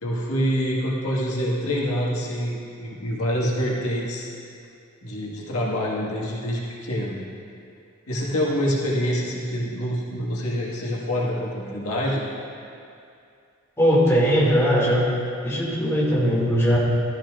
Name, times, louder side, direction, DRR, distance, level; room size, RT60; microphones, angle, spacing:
voice 1, 0.0-4.3 5.0-7.2 8.1-12.2, equal, 85° left, -4 dB, 1.8 m, -26 dB
voice 2, 13.8-15.1 15.4-16.8, equal, 15° left, -6 dB, 2.2 m, -19 dB
14.5 x 13.0 x 2.5 m, 2.4 s
head